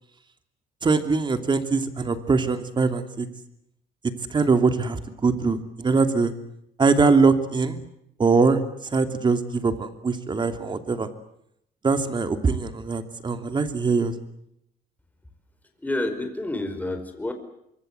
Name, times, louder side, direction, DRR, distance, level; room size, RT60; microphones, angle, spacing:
voice 1, 0.8-3.3 4.3-6.3 6.8-7.8 8.2-8.6 8.9-11.1 11.8-14.1, right 4 dB, 25° right, 8 dB, 2.9 m, -22 dB
voice 2, 15.8-17.3, left 2 dB, 10° left, 7 dB, 5.1 m, -29 dB
25.0 x 23.5 x 8.2 m, 0.76 s
cardioid pair, 110°, 17 cm